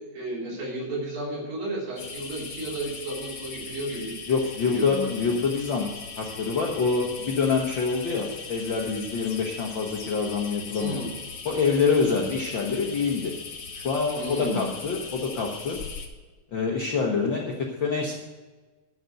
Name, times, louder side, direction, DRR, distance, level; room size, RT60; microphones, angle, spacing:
voice 1, 0.1-4.2 4.7-5.1 10.8-11.1 14.2-14.7, right 1 dB, 75° right, -4 dB, 5.2 m, -32 dB
sound 1, 2.0-16.1, left 5 dB, 45° left, 1.9 m, -39 dB
voice 2, 4.3-5.9 6.2-11.0 11.4-13.3 13.7-15.8 16.5-17.5 17.8-18.2, left 5 dB, 80° left, -1 dB, 1.0 m, -26 dB
11.0 x 6.7 x 7.8 m, 1.3 s
omnidirectional pair, 4.0 m